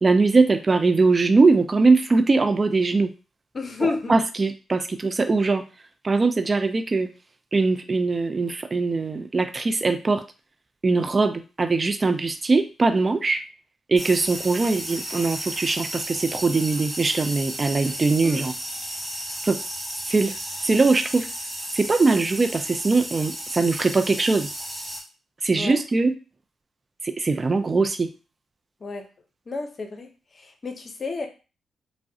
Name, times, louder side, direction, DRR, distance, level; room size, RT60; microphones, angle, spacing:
voice 1, 0.0-3.1 3.8-5.6 6.0-7.1 7.5-10.2 10.8-13.4 13.9-18.5 19.4-19.6 20.1-20.3 20.6-21.3 21.7-24.5 25.4-26.1 27.0-28.1, right 3 dB, 35° right, 8 dB, 0.3 m, -21 dB
voice 2, 3.5-4.1 18.2-18.4 25.5-25.8 28.8-29.0 29.5-30.1 30.3-31.3, left 4 dB, 50° left, 5 dB, 0.6 m, -30 dB
sound 1, 14.0-25.0, right 1 dB, 20° right, 1.1 m, -34 dB
3.4 x 2.1 x 2.7 m, 0.32 s
cardioid pair, 60°, 0 cm